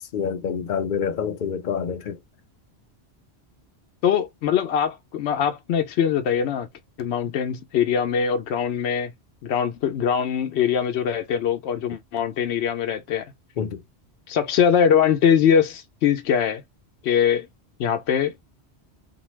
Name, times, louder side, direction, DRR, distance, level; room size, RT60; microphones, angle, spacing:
voice 1, 0.1-2.2 13.6-13.8, left 7 dB, 55° left, 0.7 m, -27 dB
voice 2, 4.0-6.7 7.0-9.1 9.4-13.3 14.3-16.6 17.0-17.5 17.8-18.3, left 8 dB, 85° left, 0.9 m, -22 dB
2.7 x 2.3 x 3.0 m
omnidirectional pair, 1.1 m